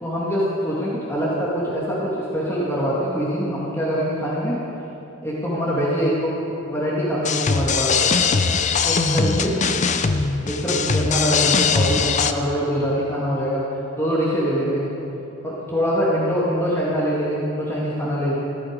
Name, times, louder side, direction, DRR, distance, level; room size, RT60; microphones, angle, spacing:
voice 1, 0.0-4.6 5.2-6.3 6.6-8.0 8.8-9.6 10.4-13.6 13.9-14.9 15.4-18.3, equal, 15° left, -7 dB, 2.1 m, -23 dB
sound 1, 7.2-12.3, left 5 dB, 35° left, 0.5 m, -21 dB
15.0 x 12.0 x 5.2 m, 2.9 s
head